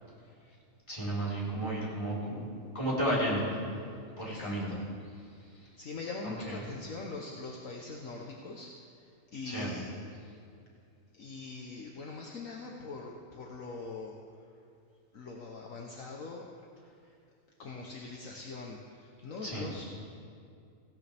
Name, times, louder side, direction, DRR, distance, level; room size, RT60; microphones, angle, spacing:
voice 1, 0.9-2.4 2.7-3.5 4.2-4.7 6.2-6.6 9.4-9.8 19.4-19.7, right 1 dB, 20° left, -7 dB, 4.4 m, -32 dB
voice 2, 4.2-4.8 5.8-8.7 9.0-9.9 11.1-14.2 15.1-16.5 17.6-19.8, left 3 dB, 60° left, 0 dB, 1.5 m, -42 dB
18.5 x 16.5 x 3.5 m, 2.5 s
omnidirectional pair, 1.6 m